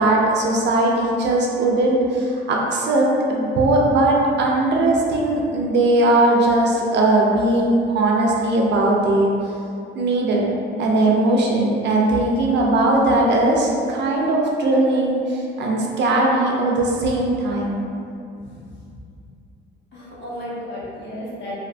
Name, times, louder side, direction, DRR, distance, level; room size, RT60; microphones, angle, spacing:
voice 1, 0.0-9.3 9.9-10.5 10.8-17.8, right 2 dB, 60° right, -1 dB, 0.4 m, -19 dB
voice 2, 18.4-18.7 19.2-19.3 19.9-21.5, equal, 65° left, -7 dB, 0.8 m, -34 dB
2.5 x 2.1 x 2.5 m, 2.5 s
cardioid pair, 90°, 20 cm